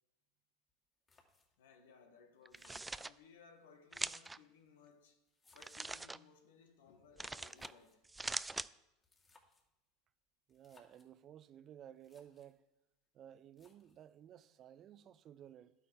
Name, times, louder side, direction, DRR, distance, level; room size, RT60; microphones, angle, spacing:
sound 1, 0.7-0.8 1.1-1.7 2.5-3.5 4.4-6.1 7.3-8.1 8.9-9.7 10.5-11.1 11.7-11.8 11.9-12.6 13.5-14.1, left 3 dB, 25° left, 2.4 m, -68 dB
voice 1, 1.6-5.2 5.5-8.1, left 5 dB, 80° left, 1.6 m, -62 dB
sound 2, 2.5-3.1 3.9-4.4 5.6-6.2 7.2-7.7 8.0-8.7, right 2 dB, 10° right, 0.4 m, -42 dB
voice 2, 10.5-12.6 13.1-15.7, right 10 dB, 45° right, 0.7 m, -56 dB
12.0 x 8.6 x 4.7 m
hypercardioid pair, 90°, 0 cm